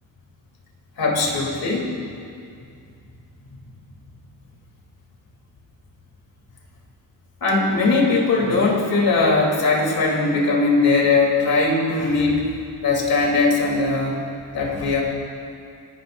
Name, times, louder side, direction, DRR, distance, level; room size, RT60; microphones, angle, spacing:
voice 1, 1.0-2.2 7.4-12.5 12.8-14.2 14.5-15.0, left 3 dB, 60° left, -2 dB, 3.5 m, -20 dB
28.5 x 13.0 x 2.7 m, 2.4 s
cardioid pair, 110°, 40 cm